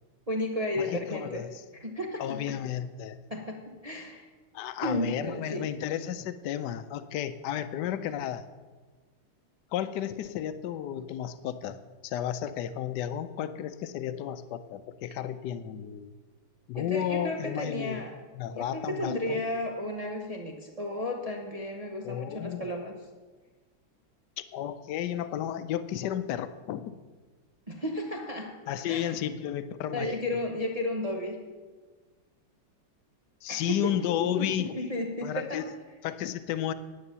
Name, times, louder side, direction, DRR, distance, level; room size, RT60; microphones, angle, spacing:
voice 1, 0.3-1.4 1.7-2.4 3.3-4.3 4.8-5.7 16.8-18.1 18.5-22.9 27.7-28.5 28.9-29.1 29.9-31.4 33.5-33.9 34.4-35.7, left 1 dB, 30° right, 1 dB, 0.6 m, -33 dB
voice 2, 0.8-1.6 2.2-3.2 4.5-8.5 9.7-16.1 16.7-18.0 18.3-19.4 22.0-22.7 24.5-27.0 28.7-30.1 33.4-34.8 35.2-35.7 36.0-36.7, left 10 dB, 70° left, 12 dB, 1.1 m, -33 dB
9.8 x 8.8 x 6.8 m, 1.3 s
omnidirectional pair, 2.3 m